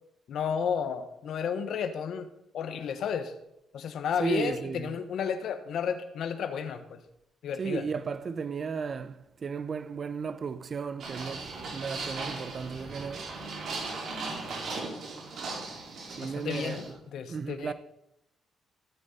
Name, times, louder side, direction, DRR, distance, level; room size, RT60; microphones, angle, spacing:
voice 1, 0.3-2.3 2.5-3.3 3.7-7.0 7.4-7.8 16.2-17.7, left 7 dB, 70° left, 1.3 m, -32 dB
voice 2, 4.2-4.9 7.6-13.3 16.2-16.8 17.3-17.7, right 5 dB, 45° right, 0.9 m, -34 dB
sound 1, 11.0-16.9, right 3 dB, 65° right, 5.0 m, -38 dB
15.5 x 9.0 x 4.4 m
cardioid pair, 90°, 0 cm